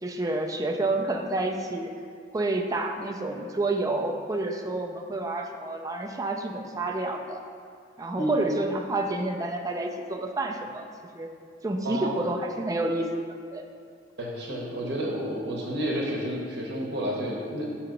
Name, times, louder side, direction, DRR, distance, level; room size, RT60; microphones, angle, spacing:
voice 1, 0.0-1.9 2.3-7.4 8.0-10.9 11.2-11.3 11.6-13.6, right 2 dB, 20° right, 3 dB, 0.4 m, -29 dB
voice 2, 14.2-17.7, equal, 60° right, -3 dB, 0.9 m, -30 dB
7.0 x 2.8 x 5.1 m, 2.3 s
head